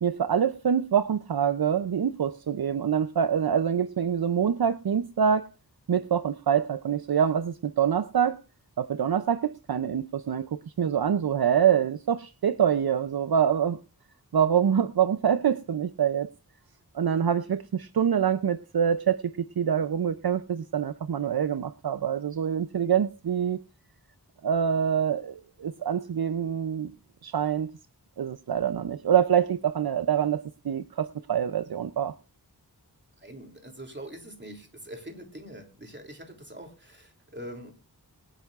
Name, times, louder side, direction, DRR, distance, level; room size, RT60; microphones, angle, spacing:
voice 1, 0.0-5.5 5.9-8.4 8.8-13.8 14.3-16.3 16.9-23.6 24.4-26.9 27.2-27.7 28.2-32.1, right 8 dB, 65° right, 0.6 m, -25 dB
voice 2, 33.2-37.7, right 1 dB, 30° right, 3.0 m, -43 dB
24.0 x 9.1 x 2.4 m
wide cardioid pair, 60°, 40 cm